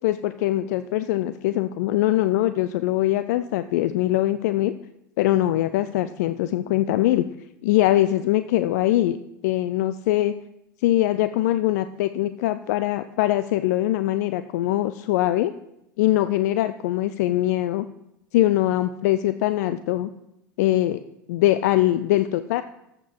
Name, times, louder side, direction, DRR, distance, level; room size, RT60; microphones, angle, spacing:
voice 1, 0.0-4.7 5.2-7.2 7.6-9.2 9.4-10.3 10.8-15.5 16.0-17.9 18.3-20.1 20.6-21.0 21.3-22.6, left 14 dB, 60° left, 13 dB, 0.4 m, -22 dB
14.0 x 7.6 x 4.6 m, 0.85 s
figure-of-eight pair, 75°, 10 cm